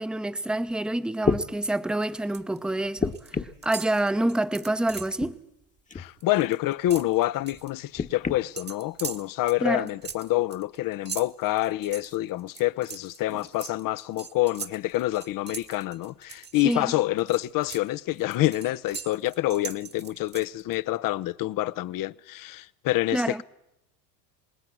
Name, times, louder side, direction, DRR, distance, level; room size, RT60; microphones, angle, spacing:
voice 1, 0.0-3.2 3.6-5.4 9.6-9.9 16.6-16.9 23.1-23.4, right 1 dB, ahead, 0.9 m, -27 dB
sound 1, 0.7-0.8 1.2-1.5 3.0-3.7 4.9-5.3 5.9-6.1 7.9-8.4 9.3-9.4, left 4 dB, 15° left, 1.2 m, -29 dB
sound 2, 1.9-2.6 2.8-3.3 3.6-5.2 5.6-5.8 6.1-7.7 8.6-16.8 17.2-20.8, right 6 dB, 20° right, 1.3 m, -41 dB
voice 2, 5.9-23.4, left 16 dB, 45° left, 0.8 m, -27 dB
26.5 x 19.5 x 6.2 m
supercardioid pair, 95°, 48 cm